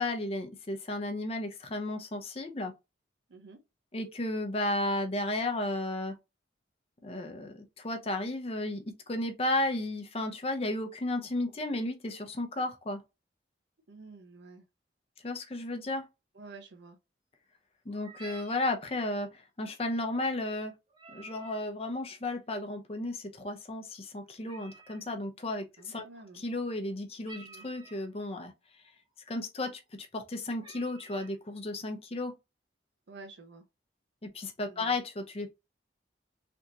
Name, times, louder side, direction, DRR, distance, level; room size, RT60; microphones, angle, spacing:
voice 1, 0.0-2.7 3.9-6.2 7.0-13.0 15.2-16.1 17.9-20.7 21.1-26.1 26.3-28.5 29.3-32.3 34.2-35.5, left 2 dB, 30° left, 0.6 m, -34 dB
voice 2, 3.3-3.6 13.9-14.7 16.3-17.0 25.8-26.5 27.4-27.7 33.1-33.6 34.6-35.0, right 3 dB, 65° right, 0.7 m, -50 dB
sound 1, 17.9-18.7 20.9-21.7 24.4-25.1 27.2-28.1 28.9-29.0 29.3-29.6 30.2-30.3 30.6-31.4, right 4 dB, 25° right, 0.6 m, -51 dB
3.4 x 2.8 x 2.6 m
head